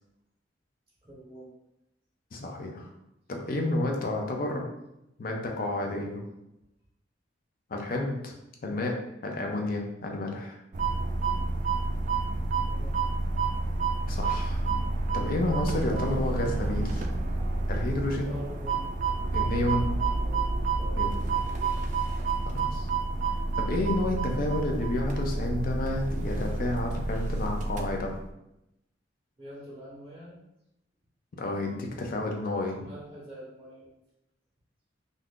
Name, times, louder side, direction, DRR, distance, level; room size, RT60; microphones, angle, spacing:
voice 1, 1.0-1.5 12.7-13.1 18.1-22.0 29.4-30.4 32.8-33.9, right 1 dB, 20° right, -7 dB, 0.7 m, -47 dB
voice 2, 2.3-2.9 3.3-4.7 5.2-6.2 7.7-8.3 8.6-8.9 9.2-10.6 14.1-14.7 15.1-17.1 17.7-18.4 19.3-20.0 21.0-21.1 22.5-22.9 23.6-28.1 31.4-32.8, left 1 dB, 50° left, 1 dB, 0.5 m, -30 dB
sound 1, 10.7-28.2, right 3 dB, 45° right, 0.3 m, -29 dB
2.7 x 2.4 x 3.6 m, 0.87 s
head